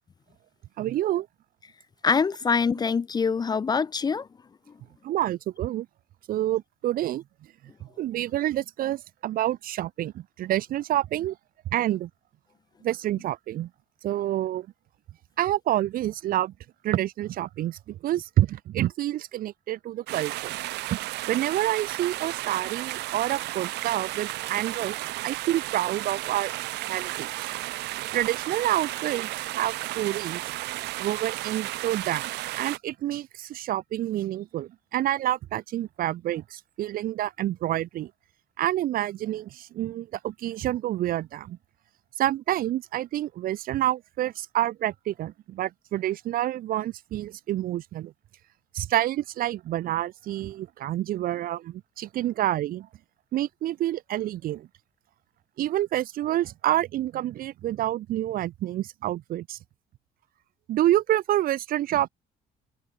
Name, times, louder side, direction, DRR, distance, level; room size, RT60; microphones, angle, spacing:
voice 1, 0.8-1.3 5.0-5.9 6.3-7.2 7.8-11.4 11.7-12.1 12.8-13.7 14.0-14.7 15.4-16.5 16.8-20.6 20.9-21.0 21.3-25.0 25.2-26.5 26.9-27.6 28.1-29.3 29.5-30.4 31.0-38.1 38.6-41.6 42.2-48.1 48.7-52.9 53.3-54.7 55.6-59.6 60.7-62.1, right 13 dB, 60° right, 0.6 m, -28 dB
voice 2, 2.0-4.3, left 5 dB, 25° left, 0.5 m, -24 dB
sound 1, 20.1-32.8, right 18 dB, 85° right, 2.4 m, -33 dB
cardioid pair, 110°, 17 cm